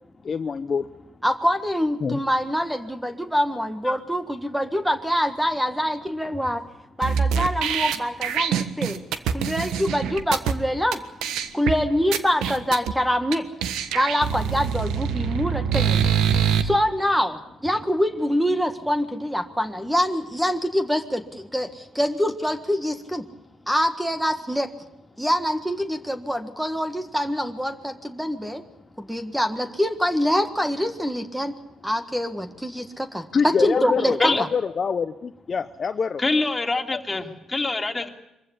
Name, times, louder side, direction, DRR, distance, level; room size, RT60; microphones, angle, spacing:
voice 1, 0.2-0.9 2.0-2.2 3.8-4.0 33.3-36.2 36.9-37.0, left 6 dB, 45° left, 8 dB, 0.9 m, -25 dB
voice 2, 1.2-6.6 7.0-9.0 9.3-11.0 11.5-13.5 13.9-16.0 16.6-23.3 23.7-24.7 25.2-28.6 29.0-31.6 31.8-34.2, equal, 5° right, 8 dB, 1.6 m, -25 dB
sound 1, 7.0-10.5 10.9-11.0 11.2-11.7 12.1-12.9 13.3-13.4 13.6-16.6, right 7 dB, 90° right, 1.4 m, -24 dB
voice 3, 36.2-38.1, left 3 dB, 20° left, 3 dB, 2.8 m, -24 dB
24.0 x 15.5 x 9.9 m, 0.90 s
cardioid pair, 90°, 0 cm